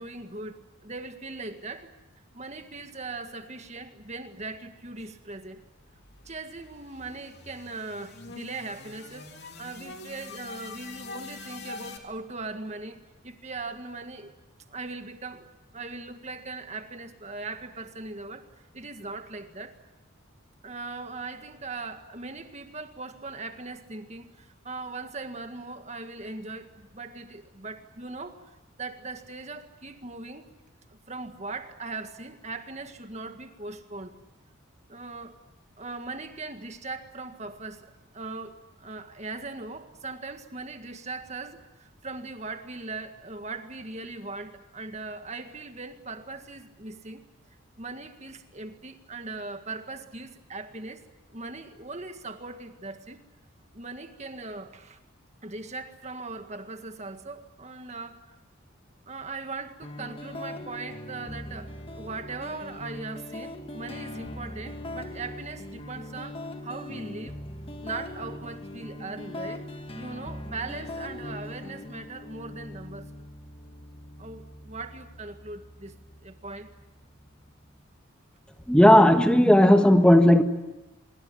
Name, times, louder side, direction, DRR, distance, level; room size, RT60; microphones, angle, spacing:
voice 1, 0.0-1.9 2.3-5.6 6.3-9.3 9.6-14.3 14.7-15.5 15.7-18.5 18.7-19.8 20.6-30.5 30.9-34.1 34.9-35.4 35.8-47.3 47.8-51.0 51.3-53.2 53.7-55.0 55.4-58.2 59.1-67.4 67.8-69.6 69.9-73.1 74.2-75.9 76.2-76.7, right 3 dB, 35° right, 7 dB, 1.8 m, -39 dB
sound 1, 5.6-12.0, left 4 dB, 50° left, 3.1 m, -44 dB
sound 2, 59.8-77.8, left 1 dB, 25° left, 1.6 m, -41 dB
voice 2, 78.7-80.4, left 1 dB, 5° left, 7 dB, 1.4 m, -16 dB
25.5 x 22.5 x 8.7 m, 0.98 s
head